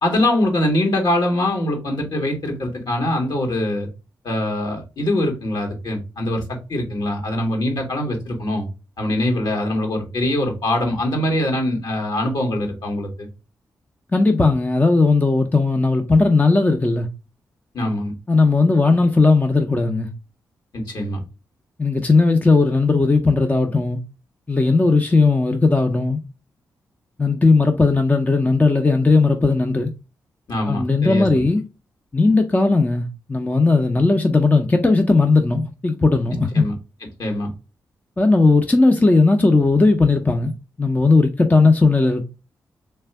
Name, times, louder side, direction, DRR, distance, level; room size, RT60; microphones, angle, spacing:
voice 1, 0.0-3.9 4.2-8.7 9.0-13.3 17.7-18.1 20.7-21.2 30.5-31.3 36.5-36.7 37.2-37.5, left 1 dB, 60° left, 1.9 m, -23 dB
voice 2, 14.1-17.1 18.3-20.1 21.8-24.0 24.5-26.2 27.2-29.9 30.7-31.6 32.1-36.7 38.2-42.2, left 3 dB, 20° left, 0.8 m, -17 dB
3.4 x 3.3 x 4.5 m
hypercardioid pair, 40°, 8 cm